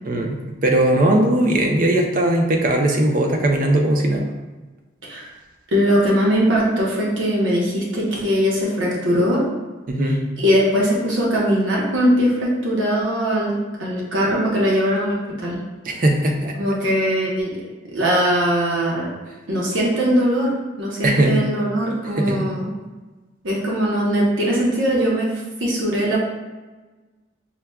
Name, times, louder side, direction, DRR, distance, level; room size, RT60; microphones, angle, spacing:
voice 1, 0.0-4.3 9.9-10.2 15.8-16.5 21.0-21.4 22.2-22.5, right 1 dB, 45° right, 2 dB, 0.5 m, -19 dB
voice 2, 5.7-9.4 10.0-13.5 13.8-15.6 16.5-17.6 17.9-19.1 19.5-22.7 23.4-26.2, equal, 85° right, -4 dB, 0.8 m, -20 dB
5.6 x 2.2 x 2.2 m, 1.2 s
head